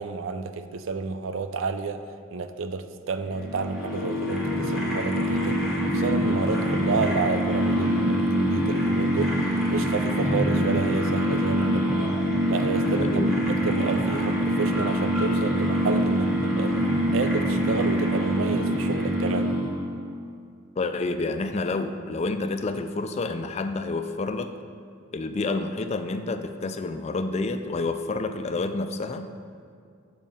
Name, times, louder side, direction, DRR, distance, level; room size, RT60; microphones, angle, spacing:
voice 1, 0.0-2.0 2.3-5.6 5.8-9.4 9.7-12.2 12.5-13.2 13.5-16.8 17.1-19.5, right 4 dB, 70° right, 10 dB, 0.4 m, -30 dB
sound 1, 3.3-19.9, equal, ahead, 1.1 m, -24 dB
sound 2, 3.8-9.7, right 1 dB, 70° left, 0.7 m, -40 dB
voice 2, 13.0-13.7 20.8-24.5 25.1-29.3, left 3 dB, 30° left, 9 dB, 0.3 m, -29 dB
7.3 x 5.2 x 5.5 m, 2.3 s
head